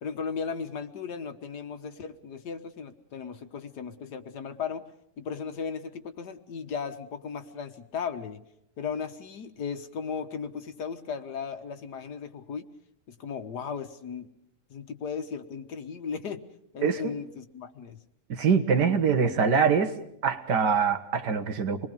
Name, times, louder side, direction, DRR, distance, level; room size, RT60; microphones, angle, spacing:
voice 1, 0.0-4.9 5.2-8.4 8.8-12.7 13.1-14.3 14.7-16.4 16.7-18.0, left 6 dB, 75° left, 7 dB, 1.9 m, -36 dB
voice 2, 16.8-17.1 18.3-19.9 20.2-21.9, right 6 dB, 90° right, 8 dB, 2.0 m, -24 dB
27.0 x 20.5 x 5.3 m, 0.76 s
omnidirectional pair, 1.8 m